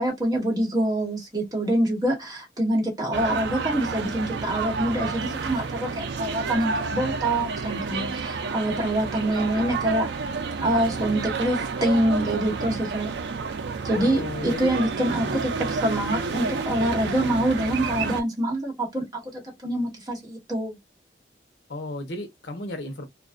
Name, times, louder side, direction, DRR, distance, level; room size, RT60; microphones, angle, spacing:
voice 1, 0.0-10.1 10.6-13.1 13.8-19.1 19.3-20.8, right 1 dB, 20° right, 1.0 m, -25 dB
sound 1, 3.1-18.2, right 4 dB, 85° right, 0.4 m, -30 dB
voice 2, 13.9-14.7 15.2-15.5 21.7-23.1, left 1 dB, 80° left, 0.8 m, -34 dB
2.5 x 2.1 x 2.3 m
head